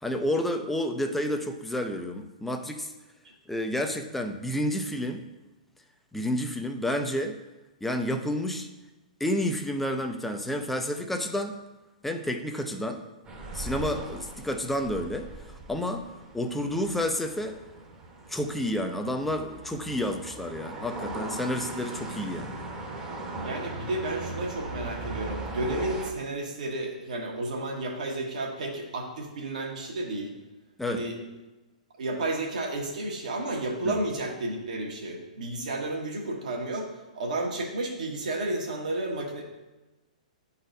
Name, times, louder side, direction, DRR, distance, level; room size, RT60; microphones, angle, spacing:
voice 1, 0.0-2.9 3.5-5.2 6.1-7.4 7.8-8.7 9.2-11.6 12.0-13.0 13.5-15.3 15.7-16.1 16.3-17.5 18.3-22.5 30.8-31.1 33.8-34.0, left 1 dB, 5° left, 5 dB, 0.5 m, -30 dB
sound 1, 13.2-26.1, right 3 dB, 20° right, 1.0 m, -39 dB
voice 2, 23.4-30.3 30.9-31.2 32.0-39.4, right 2 dB, 70° right, 1 dB, 1.5 m, -32 dB
9.9 x 4.1 x 2.6 m, 1.1 s
hypercardioid pair, 125°, 4 cm